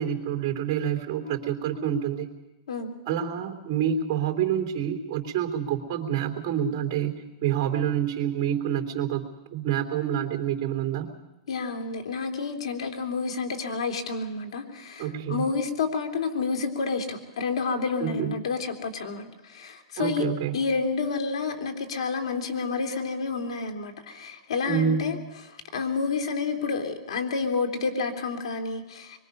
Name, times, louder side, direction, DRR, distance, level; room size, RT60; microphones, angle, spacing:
voice 1, 0.0-2.4 3.1-11.1 15.0-15.5 18.0-18.4 20.0-20.6 24.6-25.2, right 9 dB, 30° right, 2 dB, 3.3 m, -27 dB
voice 2, 11.5-20.2 20.5-25.2 25.4-29.2, left 4 dB, 85° left, 5 dB, 2.9 m, -29 dB
24.5 x 23.0 x 5.5 m, 1.0 s
supercardioid pair, 160°, 3 cm